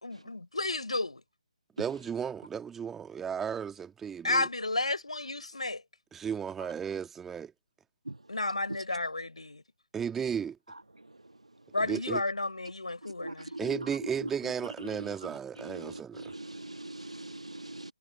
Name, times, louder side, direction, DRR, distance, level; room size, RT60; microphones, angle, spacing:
voice 1, 0.0-1.2 4.2-5.8 8.3-9.6 11.7-13.5, left 2 dB, 75° left, 4.3 m, -32 dB
voice 2, 1.8-4.5 6.1-7.5 9.9-10.6 11.8-12.2 13.6-16.2, right 7 dB, 5° right, 2.1 m, -34 dB
voice 3, 13.2-13.6 15.8-17.9, right 2 dB, 80° right, 1.8 m, -42 dB
figure-of-eight pair, 145°, 3 cm